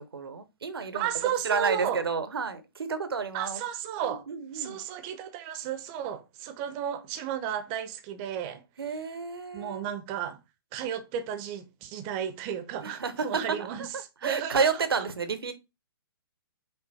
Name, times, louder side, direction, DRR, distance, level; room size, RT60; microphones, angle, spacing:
voice 1, 0.0-1.1 1.4-3.6 4.0-4.8 8.8-9.9 12.8-13.9 14.2-15.5, right 5 dB, 75° right, 0.9 m, -30 dB
voice 2, 0.9-2.0 3.3-4.3 4.5-8.6 9.5-10.4 10.7-13.9 14.2-14.7 15.0-15.1, right 9 dB, 30° right, 0.7 m, -33 dB
5.4 x 2.1 x 4.1 m
figure-of-eight pair, 125°, 13 cm